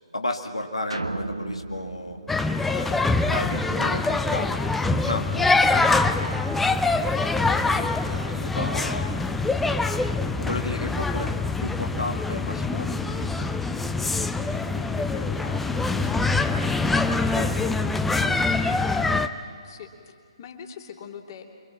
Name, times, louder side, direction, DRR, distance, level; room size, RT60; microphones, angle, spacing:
voice 1, 0.1-2.2 2.7-3.0 3.3-6.4 7.4-9.5 10.4-11.3 11.6-13.8 14.2-14.3 17.3-18.7 18.9-19.2, left 2 dB, 85° left, 2 dB, 1.9 m, -34 dB
sound 1, 0.9-3.4, right 3 dB, 80° right, 1.4 m, -35 dB
sound 2, 2.3-19.3, left 3 dB, 5° left, 0.7 m, -24 dB
voice 2, 14.4-16.2 19.6-21.5, left 7 dB, 40° left, 1 dB, 3.0 m, -42 dB
28.5 x 24.0 x 6.0 m, 2.3 s
figure-of-eight pair, 135°, 3 cm